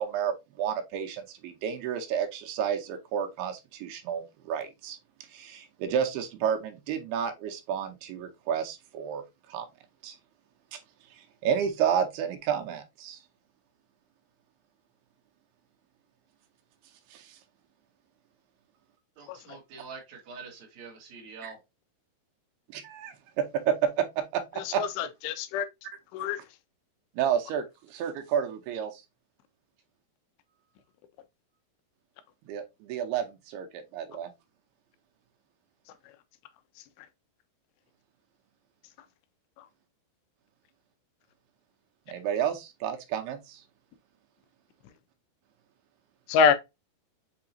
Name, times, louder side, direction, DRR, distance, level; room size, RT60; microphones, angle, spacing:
voice 1, 0.0-5.0 5.3-9.2 9.5-9.7 10.0-10.2 10.7-10.8 11.4-13.2 17.1-17.4 22.7-24.1 24.3-24.8 27.2-29.0 32.4-34.3 42.1-43.6, right 8 dB, 85° right, 2.6 m, -31 dB
voice 2, 19.2-21.6, right 5 dB, 55° right, 2.2 m, -45 dB
voice 3, 24.7-25.7 26.1-26.4 46.3-46.5, left 6 dB, 90° left, 2.8 m, -25 dB
6.8 x 2.8 x 2.6 m
omnidirectional pair, 4.8 m